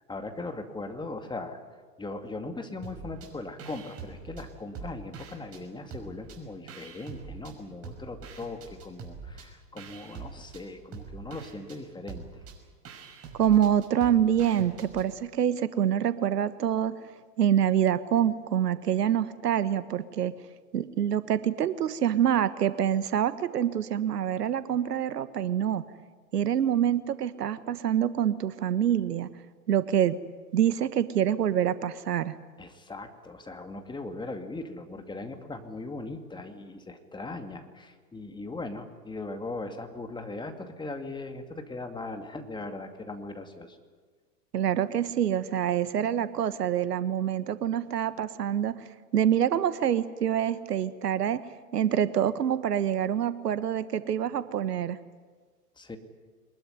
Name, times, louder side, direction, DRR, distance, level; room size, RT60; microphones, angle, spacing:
voice 1, 0.1-1.6 2.0-12.3 32.6-43.8 55.8-56.0, left 2 dB, 10° left, 6 dB, 2.3 m, -39 dB
sound 1, 2.8-3.3 3.6-5.6 5.9-7.5 7.8-15.1, right 5 dB, 30° right, 5.9 m, -44 dB
voice 2, 13.3-16.9 17.4-20.3 20.7-25.8 26.3-29.3 29.7-30.2 30.5-32.3 44.5-48.9 49.1-51.4 51.7-55.0, right 10 dB, 75° right, 14 dB, 1.4 m, -26 dB
23.0 x 21.0 x 9.6 m, 1.5 s
hypercardioid pair, 110°, 48 cm